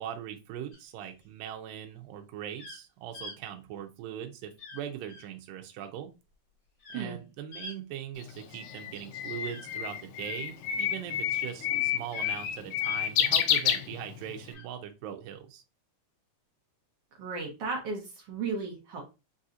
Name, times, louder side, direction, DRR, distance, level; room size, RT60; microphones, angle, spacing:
voice 1, 0.0-6.1 6.9-15.6, right 10 dB, 85° right, 4 dB, 2.3 m, -40 dB
sound 1, 0.7-1.2 2.6-2.8 3.1-3.4 4.6-4.8 5.1-5.2 6.8-7.1 7.5-7.8 9.4-10.4 12.1-12.4 12.8-13.0 14.4-14.6, left 2 dB, 45° left, 1.4 m, -46 dB
Bird, 8.2-14.4, left 10 dB, 80° left, 2.0 m, -29 dB
voice 2, 17.2-18.0 18.3-19.0, right 4 dB, 70° right, 0 dB, 1.5 m, -34 dB
5.5 x 2.7 x 2.4 m, 0.27 s
omnidirectional pair, 4.0 m